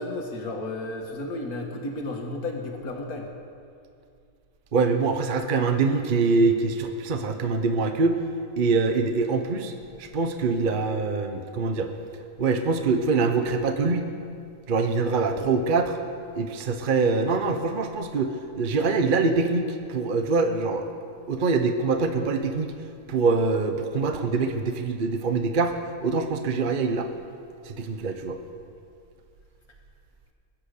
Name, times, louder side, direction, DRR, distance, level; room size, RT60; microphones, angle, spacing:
voice 1, 0.0-3.3, left 2 dB, 90° left, 1 dB, 2.1 m, -33 dB
voice 2, 4.7-8.2 8.6-9.7 10.0-11.9 12.4-14.1 14.7-16.0 16.3-20.9 21.3-22.7 23.1-27.1 27.6-28.4, right 4 dB, 40° right, 6 dB, 0.9 m, -24 dB
21.5 x 8.9 x 6.6 m, 2.4 s
omnidirectional pair, 1.5 m